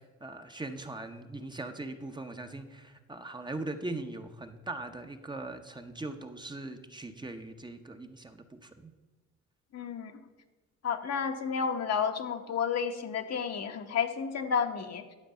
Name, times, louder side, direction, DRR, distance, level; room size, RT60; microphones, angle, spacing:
voice 1, 0.2-8.9, right 2 dB, 15° right, 6 dB, 0.7 m, -40 dB
voice 2, 9.7-10.2 10.8-15.0, left 6 dB, 55° left, 6 dB, 1.0 m, -31 dB
10.5 x 4.6 x 7.5 m, 1.2 s
cardioid pair, 90°, 30 cm